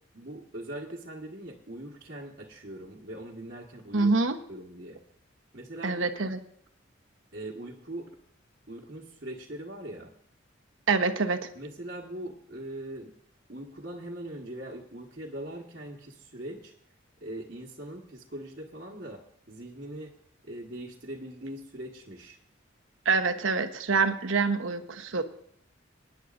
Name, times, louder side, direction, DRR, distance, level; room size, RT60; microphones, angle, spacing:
voice 1, 0.1-4.1 4.5-5.0 5.5-6.0 7.3-8.1 8.7-10.1 11.5-13.1 13.5-16.7 17.2-20.1 20.4-22.4, right 1 dB, 50° right, -4 dB, 1.5 m, -41 dB
voice 2, 3.9-4.4 5.8-6.4 10.9-11.4 23.0-25.2, right 4 dB, 80° right, 6 dB, 1.0 m, -26 dB
25.5 x 10.0 x 2.6 m, 0.64 s
head